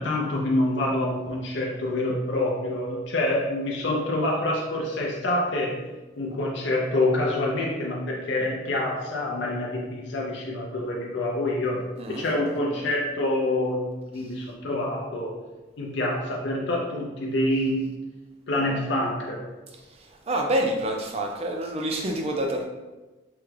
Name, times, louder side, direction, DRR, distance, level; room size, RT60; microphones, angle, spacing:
voice 1, 0.0-5.8 6.2-15.4 15.8-17.9 18.5-19.4, left 1 dB, 65° left, -2 dB, 0.5 m, -26 dB
voice 2, 19.8-22.7, right 1 dB, 30° right, 2 dB, 0.4 m, -27 dB
3.5 x 2.2 x 3.2 m, 1.2 s
head